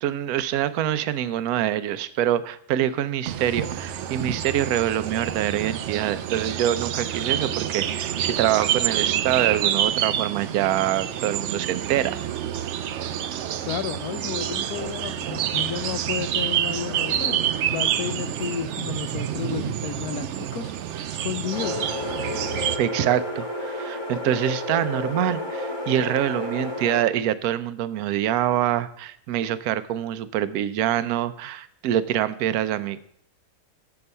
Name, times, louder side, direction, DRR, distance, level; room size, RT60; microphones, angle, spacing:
voice 1, 0.0-12.2 22.8-33.0, right 11 dB, 70° right, 14 dB, 1.0 m, -25 dB
sound 1, 3.3-22.8, right 10 dB, 85° right, 0.6 m, -28 dB
voice 2, 13.7-17.4 17.7-21.9, left 9 dB, 70° left, 12 dB, 1.0 m, -32 dB
sound 2, 21.5-27.0, left 1 dB, 20° left, 1.1 m, -31 dB
7.5 x 6.9 x 5.4 m, 0.68 s
omnidirectional pair, 1.8 m